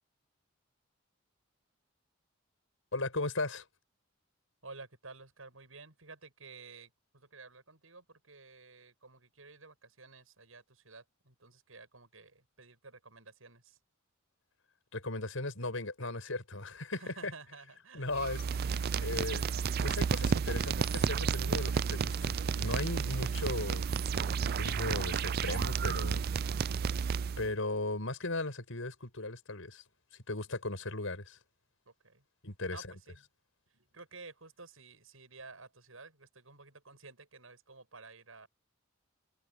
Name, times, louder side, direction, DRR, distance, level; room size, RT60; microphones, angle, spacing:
voice 1, 2.9-3.6 14.9-17.3 17.9-19.4 19.8-23.9 24.4-26.2 27.4-29.8 30.3-31.4 32.4-32.9, left 2 dB, 75° left, 6.1 m, -37 dB
voice 2, 4.6-13.8 17.0-18.1 31.9-32.2 32.7-33.2 33.7-38.5, right 3 dB, 90° right, 7.7 m, -53 dB
sound 1, 18.1-27.5, right 6 dB, 50° right, 0.4 m, -32 dB
head